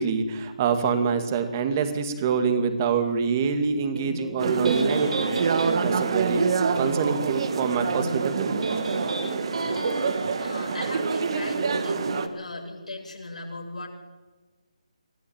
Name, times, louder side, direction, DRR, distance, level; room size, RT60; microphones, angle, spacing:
voice 1, 0.0-5.3 5.8-6.5 6.7-8.7, right 6 dB, 25° right, 8 dB, 2.1 m, -26 dB
Electric guitar, 4.0-10.9, right 2 dB, 65° right, 5.0 m, -33 dB
sound 1, 4.4-12.3, right 5 dB, 45° right, 1.8 m, -26 dB
voice 2, 9.7-13.9, left 2 dB, 80° left, -1 dB, 7.9 m, -37 dB
23.0 x 14.5 x 8.9 m, 1.3 s
figure-of-eight pair, 160°, 4 cm